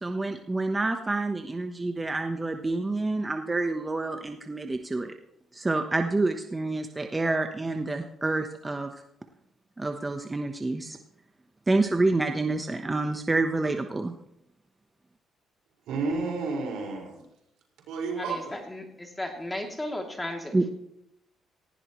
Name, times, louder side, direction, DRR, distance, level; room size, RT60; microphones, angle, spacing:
voice 1, 0.0-5.1 5.5-8.9 9.8-11.0 11.7-14.1 20.5-20.6, right 2 dB, 20° right, 5 dB, 1.1 m, -28 dB
voice 2, 15.9-17.2 17.9-18.6, right 4 dB, 90° right, -2 dB, 5.3 m, -31 dB
voice 3, 18.2-20.7, left 1 dB, 15° left, 2 dB, 2.9 m, -35 dB
18.5 x 15.5 x 3.2 m, 0.77 s
cardioid pair, 90°, 0 cm